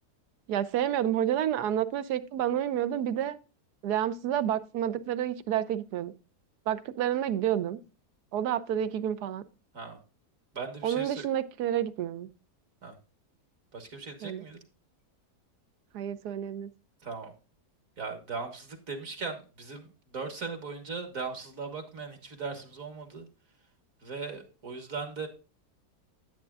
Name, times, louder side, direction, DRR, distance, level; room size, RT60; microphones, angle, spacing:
voice 1, 0.5-3.4 3.8-6.1 6.7-7.8 8.3-9.4 10.8-12.3 14.2-14.4 15.9-16.7, right 10 dB, 80° right, 1.2 m, -29 dB
voice 2, 10.5-11.2 12.8-13.0 13.7-14.6 17.0-17.3 18.0-23.3 24.0-25.3, right 4 dB, 60° right, 1.8 m, -38 dB
10.5 x 9.0 x 2.3 m
omnidirectional pair, 1.7 m